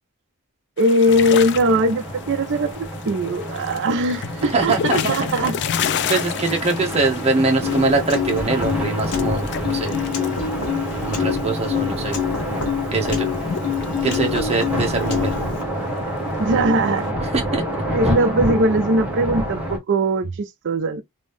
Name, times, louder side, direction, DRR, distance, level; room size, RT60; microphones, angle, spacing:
sound 1, 0.8-12.0 12.2-12.3 12.5-14.5 14.8-17.1, left 8 dB, 50° left, 0.4 m, -32 dB
voice 1, 0.8-5.6 16.4-17.2 17.9-21.0, right 1 dB, 55° right, 0.5 m, -20 dB
sound 2, 1.1-19.8, equal, 5° right, 1.1 m, -28 dB
voice 2, 4.4-5.5 6.1-9.9 11.0-12.2 12.9-13.3 14.0-15.3 17.2-17.8, right 3 dB, 30° right, 1.0 m, -23 dB
Piano, 7.6-15.6, left 8 dB, 80° left, 1.1 m, -27 dB
3.0 x 2.7 x 3.4 m
head